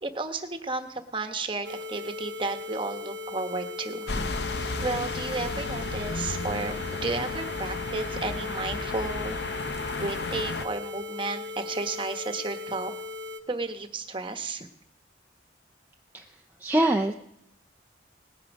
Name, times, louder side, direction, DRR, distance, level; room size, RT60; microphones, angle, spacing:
voice 1, 0.0-4.3 4.8-9.4 10.0-12.9 13.5-14.7, right 3 dB, 30° right, 7 dB, 1.1 m, -33 dB
sound 1, 1.6-13.4, left 3 dB, 70° right, 1.0 m, -38 dB
sound 2, 4.1-10.6, left 3 dB, 65° left, 0.7 m, -33 dB
voice 2, 16.6-17.1, right 1 dB, 10° right, 1 dB, 0.5 m, -23 dB
19.0 x 9.6 x 5.2 m, 0.83 s
head